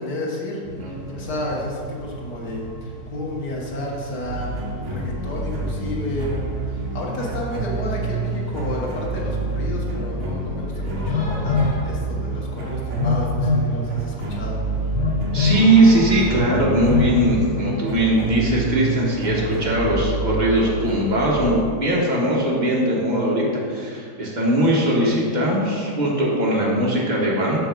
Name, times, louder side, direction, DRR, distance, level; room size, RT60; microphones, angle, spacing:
voice 1, 0.0-0.6 0.9-4.5 4.9-6.3 6.7-11.6 11.8-14.6, left 1 dB, 85° left, -3 dB, 2.0 m, -31 dB
sound 1, 0.6-20.0, right 2 dB, 5° left, 2.0 m, -36 dB
voice 2, 0.8-1.2 4.9-5.0 5.3-5.4 15.3-27.6, right 1 dB, 30° right, -4 dB, 1.5 m, -20 dB
sound 2, 4.3-21.5, right 3 dB, 50° right, 1.1 m, -28 dB
Telephone, 11.1-11.8 13.0-13.7 14.9-15.7 16.9-17.4, left 5 dB, 55° left, 0.8 m, -22 dB
6.4 x 6.2 x 5.2 m, 2.2 s
omnidirectional pair, 1.7 m